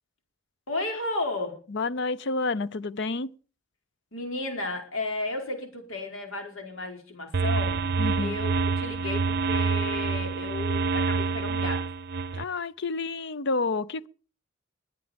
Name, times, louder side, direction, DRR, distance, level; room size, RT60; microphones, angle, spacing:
voice 1, 0.7-1.6 4.1-7.9 8.2-11.9, left 2 dB, 90° left, 4.7 m, -33 dB
voice 2, 1.7-3.3 8.0-8.4 12.3-14.1, left 3 dB, 60° left, 0.7 m, -29 dB
sound 1, 7.3-12.4, right 4 dB, 55° right, 0.6 m, -27 dB
21.5 x 9.1 x 5.3 m
head